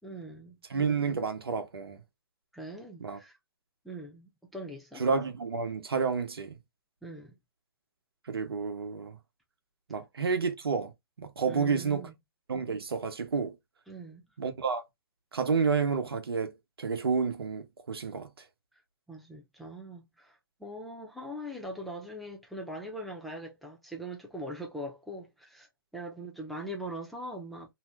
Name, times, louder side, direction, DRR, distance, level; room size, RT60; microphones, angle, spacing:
voice 1, 0.0-0.6 2.5-3.4 3.8-5.0 7.0-7.4 11.4-12.1 13.9-14.3 19.1-27.7, right 1 dB, ahead, 0.6 m, -41 dB
voice 2, 0.7-2.0 3.0-3.2 5.0-6.6 8.3-9.2 9.9-10.9 11.2-12.1 12.5-13.5 14.4-14.8 15.3-18.3, right 5 dB, 85° right, 0.8 m, -30 dB
2.7 x 2.1 x 3.3 m
hypercardioid pair, 135°, 12 cm